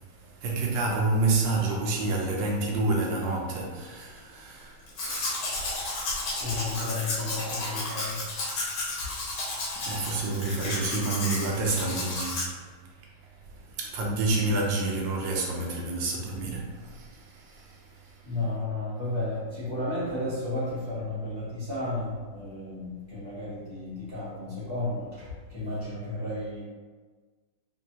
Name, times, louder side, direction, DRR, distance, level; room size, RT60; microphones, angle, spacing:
voice 1, 0.0-6.5 9.7-12.5 13.7-18.2, right 2 dB, 80° right, -1 dB, 1.4 m, -29 dB
Domestic sounds home sounds, 4.9-12.4, left 2 dB, 90° left, 1.7 m, -33 dB
voice 2, 6.4-8.2 18.2-26.6, left 2 dB, 20° left, -10 dB, 0.9 m, -33 dB
4.4 x 2.6 x 2.9 m, 1.4 s
omnidirectional pair, 2.1 m